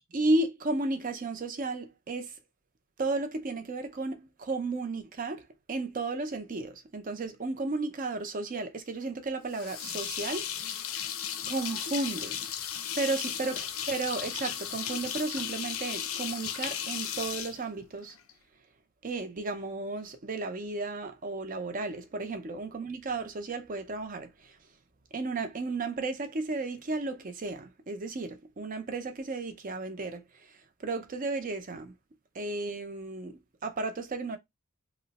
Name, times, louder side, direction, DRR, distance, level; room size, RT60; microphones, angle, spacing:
voice 1, 0.1-2.3 3.0-5.4 5.7-10.9 11.4-12.4 13.0-18.2 19.0-24.5 25.1-30.2 30.8-31.9 32.3-34.4, right 3 dB, 40° right, 0.5 m, -33 dB
sound 1, 9.5-18.3, left 9 dB, 85° left, 0.5 m, -35 dB
3.0 x 2.0 x 4.0 m
head